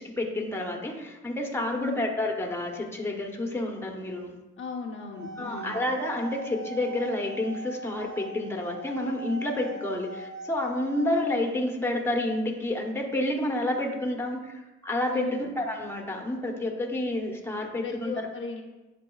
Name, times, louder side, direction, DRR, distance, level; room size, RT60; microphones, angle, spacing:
voice 1, 0.0-4.4 5.4-18.3, left 1 dB, 10° left, 2 dB, 1.0 m, -29 dB
voice 2, 1.7-2.0 4.6-5.8 15.1-15.5 17.8-18.6, left 5 dB, 45° left, 0 dB, 0.7 m, -36 dB
sound 1, 5.0-11.2, right 2 dB, 70° right, 0.8 m, -41 dB
10.0 x 4.1 x 2.4 m, 1.1 s
cardioid pair, 90°, 30 cm